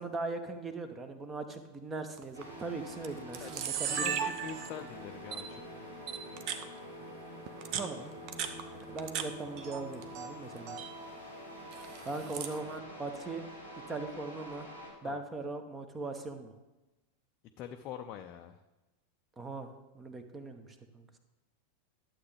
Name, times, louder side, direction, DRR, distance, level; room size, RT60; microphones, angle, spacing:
voice 1, 0.0-4.3 7.7-8.1 8.7-10.8 12.0-13.4 13.9-14.7 15.0-16.5 19.4-20.7 20.9-21.2, right 3 dB, 15° right, 8 dB, 0.9 m, -40 dB
Camera, 2.2-2.4 3.0-3.1 3.3-4.9 5.3-5.4 6.1-6.6 7.5-9.3 9.6-10.3 10.6-10.9 11.7-12.6, right 8 dB, 40° right, 0.7 m, -36 dB
sound 1, 2.3-14.9, equal, 80° right, 2.9 m, -47 dB
voice 2, 3.9-5.7 15.0-15.2 17.6-18.6, left 8 dB, 40° left, 6 dB, 0.5 m, -44 dB
11.5 x 7.5 x 3.4 m, 1.1 s
figure-of-eight pair, 90°, 0 cm